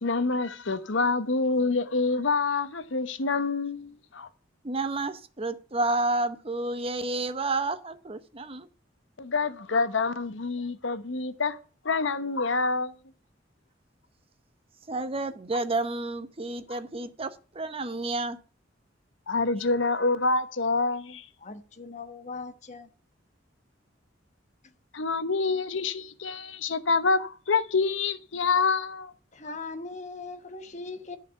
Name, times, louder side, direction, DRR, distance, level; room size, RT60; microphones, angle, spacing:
voice 1, 0.0-4.3 9.2-11.6 11.8-12.9 19.3-21.3 24.9-29.1, left 4 dB, 90° left, 1.0 m, -27 dB
voice 2, 4.6-8.7 14.9-18.4, right 2 dB, 30° right, 0.9 m, -30 dB
voice 3, 21.4-22.9 29.3-31.2, left 3 dB, 40° left, 1.2 m, -39 dB
14.0 x 5.0 x 7.0 m
head